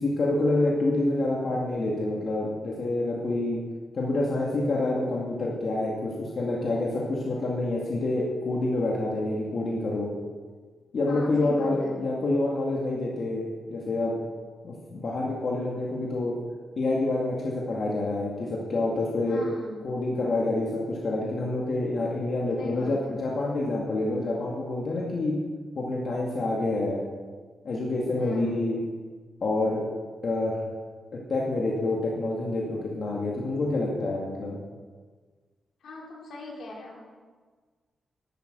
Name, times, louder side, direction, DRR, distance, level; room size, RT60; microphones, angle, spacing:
voice 1, 0.0-3.6 3.9-10.1 10.9-14.2 14.6-16.3 16.8-19.4 19.8-25.3 25.7-27.0 27.6-28.8 29.4-29.8 30.2-30.6 31.1-34.6, left 2 dB, 50° left, -3 dB, 2.2 m, -27 dB
voice 2, 11.1-11.9 19.3-19.8 22.6-23.1 28.2-28.5 35.8-37.0, left 2 dB, 80° left, -3 dB, 3.7 m, -40 dB
12.0 x 8.8 x 7.7 m, 1.5 s
wide cardioid pair, 140°, 0 cm